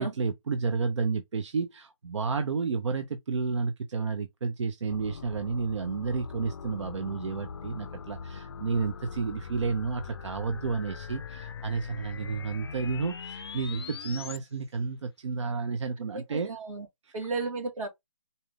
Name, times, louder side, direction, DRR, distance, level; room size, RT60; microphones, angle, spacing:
voice 1, 0.0-16.5 17.0-17.1, right 4 dB, 60° right, 0.7 m, -31 dB
sound 1, 4.9-14.4, left 6 dB, 50° left, 0.4 m, -41 dB
voice 2, 16.1-16.9 17.1-17.9, right 3 dB, 85° right, 2.0 m, -33 dB
4.1 x 2.6 x 3.3 m
hypercardioid pair, 165°, 17 cm